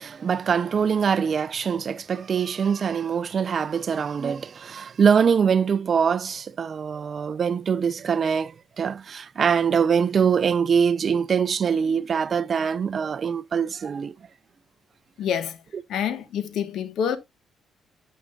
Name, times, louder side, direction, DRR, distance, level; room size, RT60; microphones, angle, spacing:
voice 1, 0.0-14.1, right 6 dB, 45° right, 0.4 m, -23 dB
voice 2, 15.2-15.6 15.9-17.2, left 8 dB, 75° left, 1.1 m, -27 dB
12.0 x 6.2 x 2.3 m
cardioid pair, 90°, 0 cm